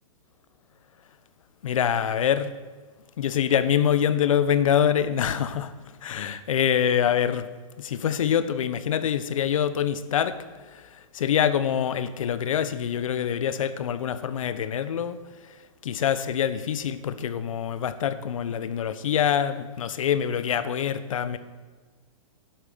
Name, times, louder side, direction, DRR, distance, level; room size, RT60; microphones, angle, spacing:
voice 1, 1.6-2.5 3.2-5.7 6.0-7.5 7.8-10.3 11.1-15.2 15.8-21.4, left 9 dB, 70° left, 13 dB, 1.3 m, -25 dB
12.0 x 11.0 x 6.9 m, 1.4 s
hypercardioid pair, 160°, 18 cm